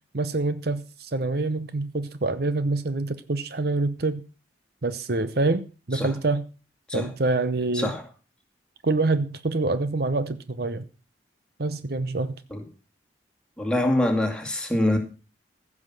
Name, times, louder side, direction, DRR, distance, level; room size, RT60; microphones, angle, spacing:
voice 1, 0.1-4.2 4.8-6.4 6.9-7.9 8.8-10.8 11.6-12.3, right 3 dB, 55° right, 0.8 m, -26 dB
voice 2, 13.6-15.0, left 1 dB, 5° left, 2.4 m, -24 dB
15.5 x 6.2 x 7.6 m
head